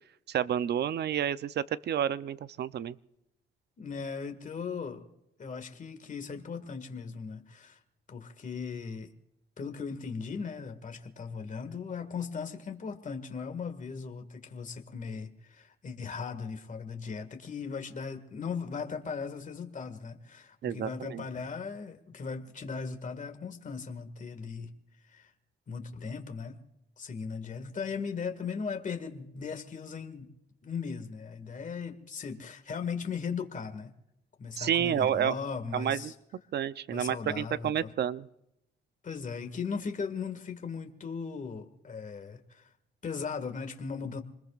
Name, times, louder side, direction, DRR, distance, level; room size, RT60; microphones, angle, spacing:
voice 1, 0.3-3.0 20.6-21.2 34.6-35.4 35.7-36.1 36.5-38.3, right 9 dB, 55° right, 15 dB, 0.7 m, -30 dB
voice 2, 3.8-5.1 5.4-7.8 8.1-9.1 9.6-24.7 25.0-25.3 25.7-26.6 27.0-30.3 30.6-33.9 34.4-36.1 36.9-37.9 39.0-42.7 43.0-44.2, left 5 dB, 40° left, 6 dB, 2.0 m, -38 dB
27.0 x 20.5 x 2.5 m, 0.82 s
cardioid pair, 90°, 20 cm